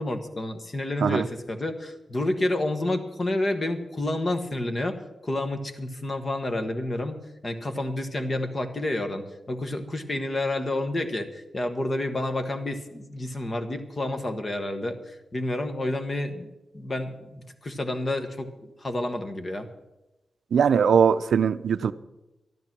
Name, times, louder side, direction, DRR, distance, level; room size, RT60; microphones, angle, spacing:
voice 1, 0.0-16.5 16.7-19.7, left 1 dB, 25° left, 8 dB, 1.2 m, -29 dB
voice 2, 20.5-21.9, right 7 dB, 75° right, 13 dB, 0.5 m, -20 dB
13.0 x 12.5 x 6.0 m, 0.99 s
wide cardioid pair, 170°, 0 cm